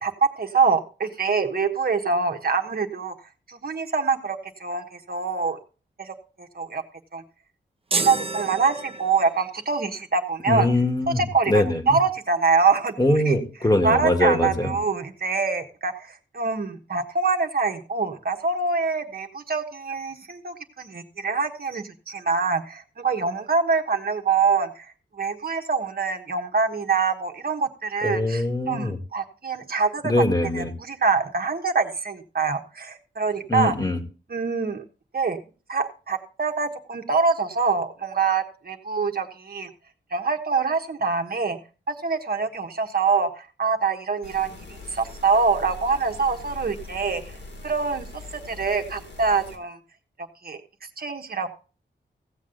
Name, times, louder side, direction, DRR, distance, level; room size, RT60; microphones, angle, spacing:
voice 1, 0.0-3.1 3.5-5.6 6.0-6.8 7.1-7.2 7.9-10.7 11.2-12.9 13.2-13.4 13.8-24.9 25.2-30.1 30.5-33.7 34.3-34.8 35.1-35.4 35.7-39.7 40.1-41.6 41.9-44.6 44.9-47.4 47.6-49.8 50.4-50.6 51.0-51.5, right 4 dB, 55° right, 4 dB, 1.4 m, -25 dB
sound 1, 7.9-9.5, right 3 dB, 30° right, 0.9 m, -29 dB
voice 2, 10.5-12.0 13.0-14.8 28.0-29.0 30.0-30.7 33.5-34.0, left 1 dB, 20° left, 5 dB, 1.8 m, -22 dB
sound 2, 44.2-49.6, left 2 dB, 70° left, 2.5 m, -41 dB
16.0 x 7.4 x 3.9 m, 0.35 s
cardioid pair, 75°, 19 cm